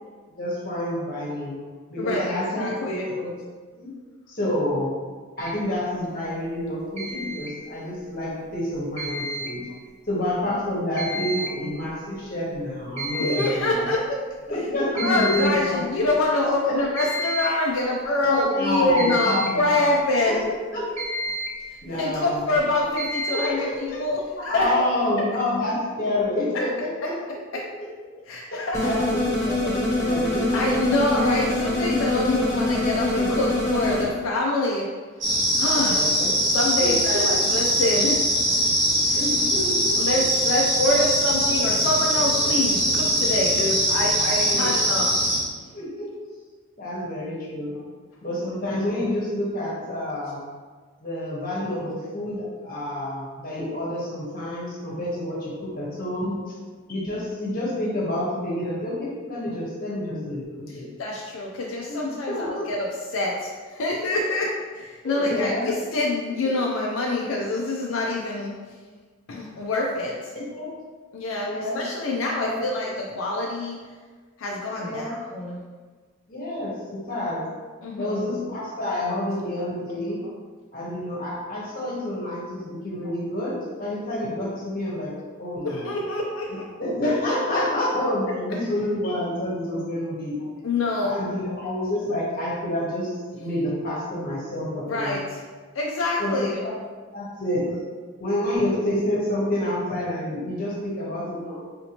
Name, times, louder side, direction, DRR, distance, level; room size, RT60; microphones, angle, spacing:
voice 1, 0.4-1.6 1.9-2.7 3.0-3.3 3.7-3.9 4.3-4.9 5.4-9.6 10.1-13.9 14.5-15.8 16.6-16.8 18.2-19.9 20.2-20.4 20.7-20.8 21.8-22.6 22.8-22.9 23.3-24.0 24.4-27.2 28.5-30.6 35.7-36.3 36.8-37.4 39.2-40.0 44.5-44.7 45.7-46.1 46.8-47.7 48.2-50.4 51.0-56.4 56.9-60.5 60.7-60.9 61.9-62.7 65.0-65.7 70.3-70.7 71.4-71.8 72.4-72.7 74.8-75.1 76.3-77.4 78.0-80.2 80.7-85.1 85.4-85.9 86.8-90.4 91.0-93.1 93.4-95.2 96.2-96.3 97.1-97.6 98.2-101.6, left 1 dB, 45° left, -5 dB, 1.0 m, -28 dB
voice 2, 2.0-3.1 13.2-14.2 15.0-20.5 21.9-24.8 28.3-28.8 30.5-34.9 35.6-36.1 36.5-38.2 39.1-39.2 40.0-45.1 61.0-68.5 69.3-70.3 71.1-73.8 74.4-75.6 77.8-78.2 85.6-86.6 90.6-91.2 94.9-95.4 95.7-96.6, left 2 dB, 80° left, -2 dB, 0.4 m, -26 dB
sound 1, 5.4-5.6 7.0-7.5 9.0-9.6 11.0-11.5 11.9-12.0 12.5-12.6 13.0-13.5 15.0-15.6 17.0-17.6 19.0-19.7 21.0-21.7 23.0-23.6, right 1 dB, 35° right, 0.5 m, -30 dB
sound 2, 28.7-34.0, left 1 dB, 15° left, 0.7 m, -24 dB
sound 3, 35.2-45.4, equal, 60° right, 1.3 m, -22 dB
4.1 x 2.7 x 2.9 m, 1.5 s
head